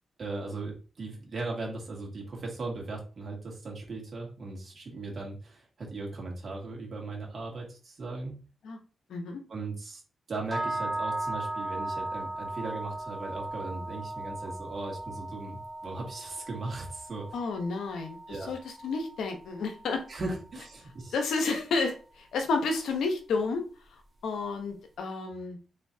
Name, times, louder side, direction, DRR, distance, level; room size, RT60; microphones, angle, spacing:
voice 1, 0.2-8.3 9.5-10.0 10.3-17.3 18.3-18.5 20.1-21.2, right 3 dB, 50° right, -1 dB, 2.1 m, -38 dB
voice 2, 9.1-9.4 17.3-18.2 18.5-20.0 21.1-23.7 24.2-25.6, left 4 dB, 85° left, 5 dB, 0.9 m, -31 dB
sound 1, 10.5-20.6, right 1 dB, 20° right, 1.3 m, -37 dB
4.3 x 3.7 x 2.7 m, 0.35 s
cardioid pair, 70°, 0 cm